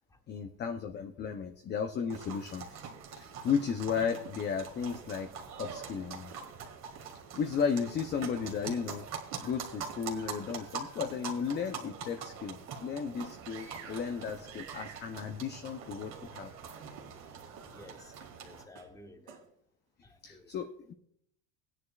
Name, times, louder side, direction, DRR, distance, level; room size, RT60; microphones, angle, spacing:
voice 1, 0.3-2.8 3.2-5.3 5.6-6.3 7.4-9.1 9.4-16.5 20.2-20.9, left 6 dB, 25° left, 0.6 m, -34 dB
sound 1, 2.1-18.6, right 6 dB, 40° right, 2.0 m, -44 dB
sound 2, 2.1-2.4 2.8-3.0 3.5-3.7 4.2-4.4 4.9-5.1 5.6-5.8 6.3-6.6 6.9-7.2 7.7-7.9 8.2-8.4 8.7-8.9 9.3-9.5 9.9-10.1 10.5-10.7 11.1-11.3 11.8-11.9 12.7-12.8 13.2-13.4 13.7-13.9 14.3-14.5 14.8-15.4 15.8-16.0 16.4-16.5 17.0-17.1 17.6-17.8 18.2-18.4 18.8-19.0 19.3-19.6, right 7 dB, 85° right, 2.7 m, -53 dB
voice 2, 17.7-18.1 18.4-19.4 20.0-20.5, left 2 dB, 10° left, 1.1 m, -54 dB
16.5 x 9.8 x 2.4 m
supercardioid pair, 130°, 40 cm